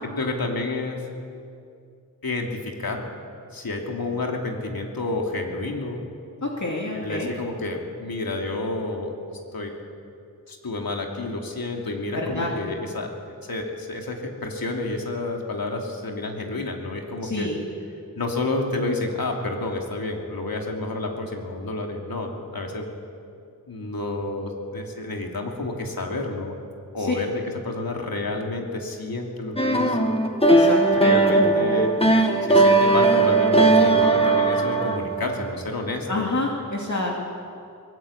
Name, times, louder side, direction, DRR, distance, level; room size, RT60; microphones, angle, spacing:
voice 1, 0.2-1.0 2.2-3.1 3.5-6.0 6.9-9.1 9.5-9.7 10.5-13.1 13.5-17.5 18.2-22.9 23.7-26.5 26.9-30.1 30.9-31.9 32.4-36.3, left 2 dB, 85° left, 1 dB, 3.0 m, -29 dB
voice 2, 6.4-7.3 12.1-12.5 17.2-17.6 27.1-27.2 30.5-31.0 36.1-37.1, left 2 dB, 55° left, -2 dB, 2.7 m, -27 dB
sound 1, 29.6-35.5, right 2 dB, 15° left, 1.9 m, -18 dB
22.5 x 19.0 x 8.8 m, 2.5 s
wide cardioid pair, 85°, 35 cm